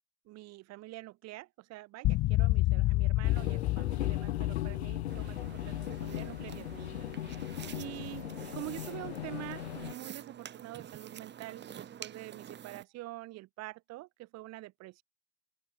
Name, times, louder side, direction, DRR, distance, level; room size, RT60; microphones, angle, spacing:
voice 1, 0.2-7.1 7.7-8.2 8.5-15.0, right 18 dB, 55° right, 2.6 m, -46 dB
sound 1, 2.0-7.4, left 18 dB, 50° left, 1.3 m, -30 dB
sound 2, 3.2-9.9, left 12 dB, 85° left, 2.8 m, -39 dB
sound 3, 5.1-12.8, right 9 dB, 35° right, 1.8 m, -48 dB
open air
hypercardioid pair, 85°, 32 cm